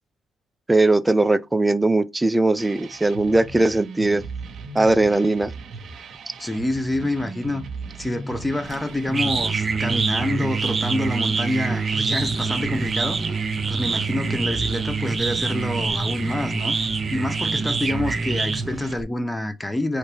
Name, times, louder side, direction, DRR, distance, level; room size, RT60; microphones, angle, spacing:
voice 1, 0.7-4.2 4.7-5.5, right 2 dB, 15° right, 0.5 m, -19 dB
sound 1, 2.6-18.9, right 3 dB, 60° right, 1.1 m, -37 dB
voice 2, 6.4-7.6 8.0-13.4 13.7-20.0, left 1 dB, 10° left, 0.8 m, -27 dB
sound 2, 8.7-19.0, right 4 dB, 35° right, 0.8 m, -25 dB
4.5 x 3.2 x 3.3 m
cardioid pair, 90°, 0 cm